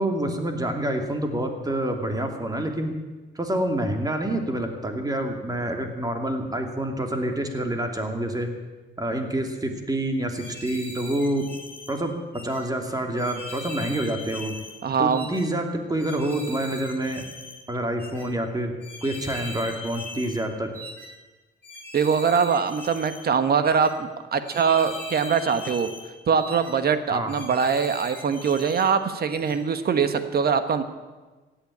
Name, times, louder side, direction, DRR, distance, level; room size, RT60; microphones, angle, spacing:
voice 1, 0.0-3.0 3.3-8.5 9.0-11.5 11.9-12.1 12.4-14.6 15.0-17.2 17.7-18.7 19.0-20.7 27.1-27.3, right 1 dB, 20° right, 4 dB, 2.6 m, -27 dB
sound 1, 10.3-11.9 12.3-12.6 13.2-14.8 15.1-15.4 16.0-17.6 18.0-18.3 18.8-20.4 20.7-21.1 21.6-23.2 23.6-23.9 24.4-26.1 26.4-26.7 27.3-28.9 29.3-29.6, left 2 dB, 10° left, 5.6 m, -40 dB
voice 2, 14.8-15.3 21.9-25.9 26.3-30.8, right 6 dB, 50° right, 10 dB, 1.3 m, -23 dB
15.5 x 9.2 x 8.6 m, 1.3 s
cardioid pair, 90°, 20 cm